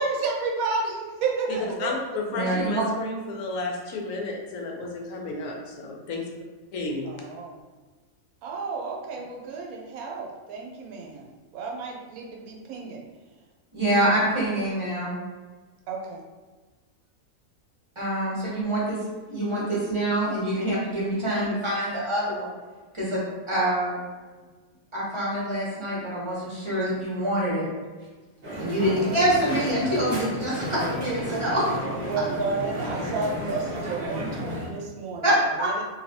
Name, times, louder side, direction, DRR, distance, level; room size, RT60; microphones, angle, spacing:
voice 1, 0.0-2.2 7.0-7.6 8.4-13.0 15.9-16.2 28.9-29.0 32.1-35.2 35.6-35.8, right 4 dB, 85° right, -1 dB, 1.0 m, -31 dB
voice 2, 1.8-6.2 6.7-7.1, left 2 dB, 75° left, 0 dB, 1.0 m, -32 dB
voice 3, 2.3-2.8 13.7-15.1 17.9-22.5 22.9-23.2 23.5-24.0 24.9-27.7 28.6-31.7 35.2-35.8, right 1 dB, 25° right, -8 dB, 0.9 m, -25 dB
Crowd, 28.4-34.7, equal, 45° right, 0.6 m, -32 dB
3.1 x 2.6 x 2.7 m, 1.3 s
omnidirectional pair, 1.5 m